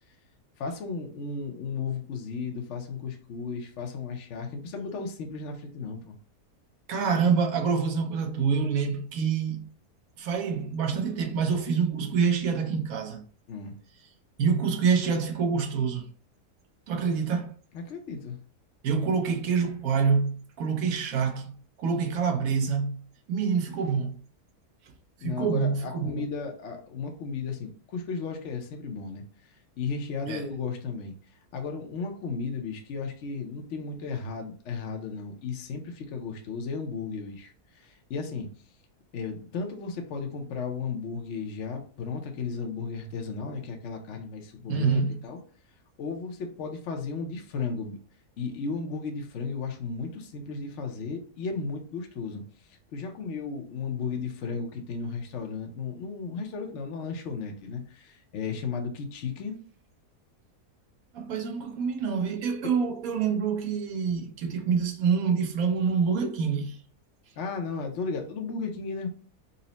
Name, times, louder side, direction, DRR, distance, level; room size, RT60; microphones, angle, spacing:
voice 1, 0.6-6.2 13.5-13.7 17.7-18.4 25.2-29.2 29.8-31.1 31.5-38.5 39.1-45.4 46.0-48.0 48.4-52.4 52.7-59.6 67.4-69.1, left 5 dB, 60° left, 0.8 m, -34 dB
voice 2, 6.9-9.7 10.2-13.2 14.4-16.1 16.9-17.5 18.8-23.0 23.3-24.2 25.2-26.3 30.3-30.4 44.7-45.2 61.1-66.8, right 6 dB, 65° right, 1.1 m, -26 dB
4.1 x 2.0 x 3.9 m
omnidirectional pair, 1.7 m